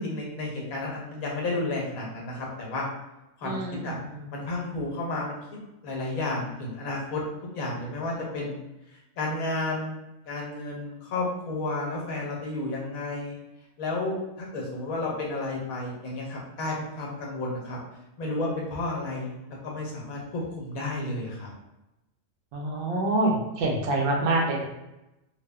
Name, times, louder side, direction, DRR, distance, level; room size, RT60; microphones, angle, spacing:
voice 1, 0.0-2.8 3.4-4.0 4.3-5.4 5.8-7.2 7.5-8.6 9.2-10.0 10.3-13.4 13.8-17.8 18.2-19.4 19.6-21.5, left 2 dB, 80° left, -2 dB, 1.2 m, -32 dB
voice 2, 3.4-4.3 22.5-24.6, right 2 dB, 65° right, -1 dB, 0.8 m, -27 dB
3.2 x 2.0 x 2.3 m, 0.95 s
omnidirectional pair, 1.5 m